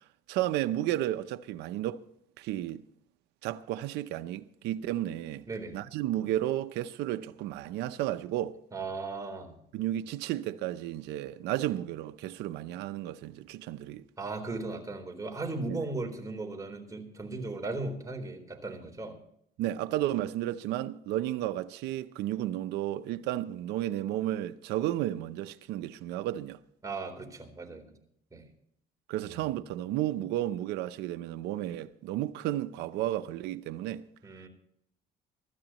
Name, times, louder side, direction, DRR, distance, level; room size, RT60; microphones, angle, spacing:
voice 1, 0.3-2.0 2.4-2.8 3.4-5.5 5.7-8.6 9.7-14.0 15.7-15.8 19.6-26.6 29.1-34.1, right 13 dB, 90° right, 0.7 m, -33 dB
voice 2, 5.5-5.8 8.7-9.6 14.2-19.2 26.8-28.0 28.3-28.4 29.2-29.5 34.2-34.5, right 3 dB, 20° right, 3.9 m, -37 dB
24.5 x 13.0 x 3.0 m
cardioid pair, 110°, 17 cm